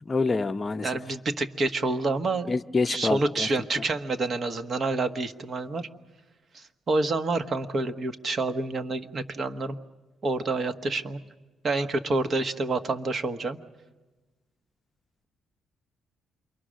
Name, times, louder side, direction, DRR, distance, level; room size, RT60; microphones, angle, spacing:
voice 1, 0.0-0.9 2.5-3.5, left 3 dB, 30° left, 0.7 m, -27 dB
voice 2, 0.8-2.5 2.9-5.9 6.5-9.8 10.2-11.2 11.6-13.6, right 3 dB, 45° right, 1.2 m, -28 dB
28.0 x 23.0 x 6.4 m
cardioid pair, 90°, 0 cm